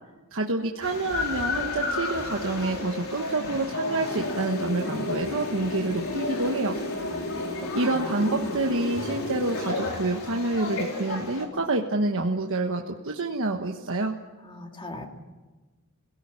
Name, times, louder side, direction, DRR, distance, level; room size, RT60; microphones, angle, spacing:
voice 1, 0.3-6.8 7.7-14.2, right 2 dB, 60° right, 2 dB, 1.4 m, -27 dB
sound 1, 0.8-11.5, left 3 dB, 70° left, 4.0 m, -33 dB
sound 2, 4.1-9.7, left 1 dB, 85° left, 3.6 m, -35 dB
voice 2, 7.0-8.6 14.4-15.1, left 1 dB, 25° left, 3 dB, 2.8 m, -38 dB
25.5 x 17.5 x 9.8 m, 1.3 s
head